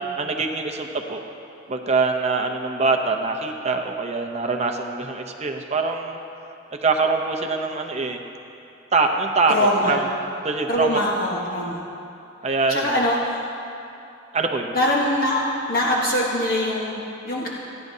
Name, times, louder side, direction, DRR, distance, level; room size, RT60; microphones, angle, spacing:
voice 1, 0.2-1.2 1.7-6.2 6.8-8.2 8.9-9.6 9.9-10.0 10.4-11.0 12.4-13.0 14.3-14.7, right 3 dB, 35° right, 4 dB, 0.7 m, -23 dB
voice 2, 9.5-10.0 10.7-11.8 12.7-13.4 14.7-17.5, left 1 dB, 45° left, -4 dB, 1.2 m, -23 dB
27.0 x 10.5 x 2.7 m, 2.7 s
head